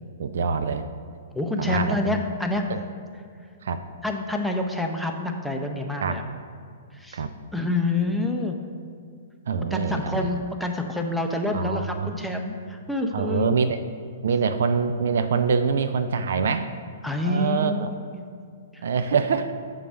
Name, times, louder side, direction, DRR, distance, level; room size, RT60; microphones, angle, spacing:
voice 1, 0.2-0.8 1.6-2.2 2.7-2.8 3.6-3.8 6.0-6.2 7.1-7.3 9.5-10.3 11.5-12.3 13.1-13.8 14.2-16.7 17.2-17.9 18.8-19.5, right 5 dB, 60° right, 10 dB, 0.3 m, -25 dB
voice 2, 1.3-2.8 4.0-6.2 6.9-7.2 7.5-8.6 9.7-13.6 17.0-17.9 18.7-18.8, left 2 dB, ahead, 2 dB, 0.6 m, -27 dB
6.7 x 3.9 x 6.2 m, 2.2 s
figure-of-eight pair, 110°, 0 cm